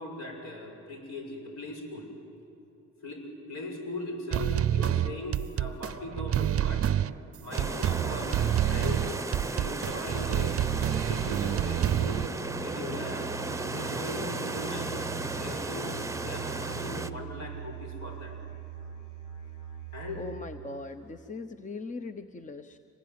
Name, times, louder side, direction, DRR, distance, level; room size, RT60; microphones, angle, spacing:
voice 1, 0.0-2.1 3.0-6.9 7.4-9.0 9.5-10.6 11.0-12.2 12.6-15.9 16.2-18.3 19.9-20.2 21.2-21.3, left 2 dB, 60° left, 2 dB, 6.7 m, -39 dB
sound 1, 4.3-12.3, right 11 dB, 50° right, 0.6 m, -28 dB
sound 2, 7.5-17.1, right 2 dB, 10° right, 0.9 m, -35 dB
Musical instrument, 10.6-20.6, right 9 dB, 90° left, 5.4 m, -43 dB
voice 2, 20.1-22.8, left 3 dB, 25° left, 9 dB, 0.9 m, -40 dB
25.5 x 20.5 x 9.6 m, 3.0 s
cardioid pair, 90°, 30 cm